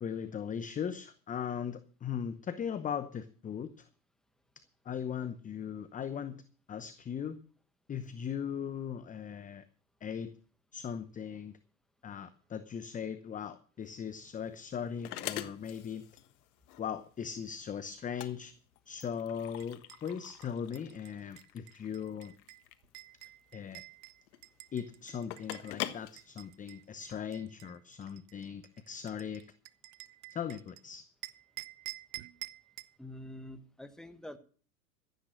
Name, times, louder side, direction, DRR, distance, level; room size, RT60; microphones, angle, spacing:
voice 1, 0.0-3.8 4.8-6.4 6.7-7.4 7.9-9.6 10.0-10.3 10.7-11.5 12.0-16.0 16.8-18.5 18.9-22.3 23.5-23.8 24.7-29.4 30.3-31.0, left 8 dB, 15° left, 12 dB, 0.8 m, -39 dB
sound 1, 13.8-27.1, left 14 dB, 65° left, 1.5 m, -45 dB
sound 2, 19.6-25.7 26.2-30.8 31.2-33.0, right 20 dB, 40° right, 0.8 m, -49 dB
voice 2, 33.0-34.4, left 1 dB, ahead, 9 dB, 1.3 m, -46 dB
15.0 x 9.1 x 6.2 m, 0.42 s
hypercardioid pair, 100°, 48 cm